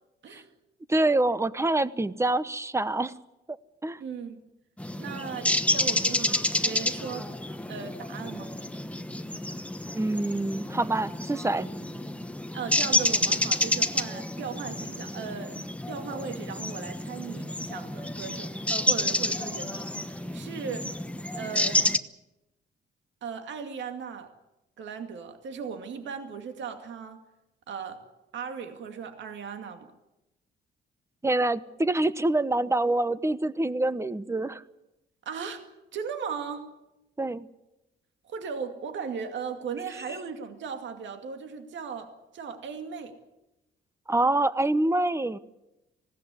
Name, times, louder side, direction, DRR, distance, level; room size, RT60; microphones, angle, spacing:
voice 1, 0.9-3.1 3.8-4.0 9.9-11.7 31.2-34.6 37.2-37.5 44.1-45.4, right 2 dB, 15° right, 15 dB, 1.0 m, -26 dB
voice 2, 4.0-4.4 5.0-7.3 7.7-8.5 12.5-15.6 15.9-21.0 21.4-21.9 23.2-24.3 24.8-27.2 27.7-28.0 28.3-29.9 35.3-35.6 35.9-36.7 38.3-43.1, right 6 dB, 70° right, 6 dB, 2.3 m, -37 dB
sound 1, 4.8-22.0, left 1 dB, 5° left, 1.1 m, -29 dB
20.0 x 17.0 x 9.6 m, 0.96 s
cardioid pair, 90°, 20 cm